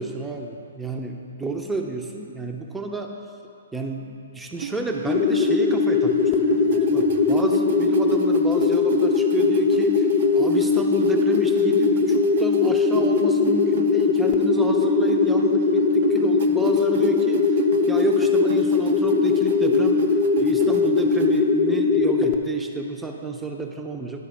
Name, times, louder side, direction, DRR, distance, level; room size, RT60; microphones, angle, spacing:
voice 1, 0.0-3.2 3.7-10.1 10.3-17.4 17.9-20.0 20.4-24.2, right 3 dB, 10° right, 2 dB, 0.6 m, -31 dB
sound 1, 4.5-21.4, right 8 dB, 55° right, 0.6 m, -34 dB
sound 2, 5.1-22.4, left 4 dB, 25° left, 0.7 m, -20 dB
11.0 x 4.1 x 5.3 m, 2.5 s
hypercardioid pair, 130°, 0 cm